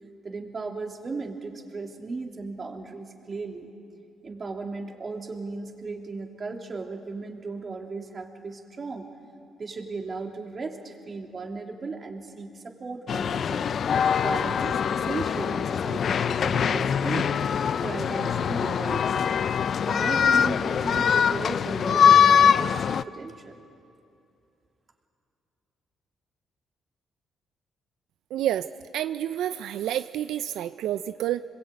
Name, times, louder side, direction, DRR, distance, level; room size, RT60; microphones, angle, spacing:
voice 1, 0.2-3.7 4.2-9.1 9.6-12.5 12.8-13.6 14.2-17.4 17.8-19.3 19.9-23.5, right 3 dB, 40° right, 2 dB, 2.9 m, -36 dB
sound 1, 13.1-23.0, left 7 dB, 55° left, 0.5 m, -23 dB
voice 2, 28.3-31.4, right 11 dB, 85° right, 12 dB, 0.5 m, -29 dB
26.5 x 21.0 x 8.9 m, 2.6 s
cardioid pair, 90°, 0 cm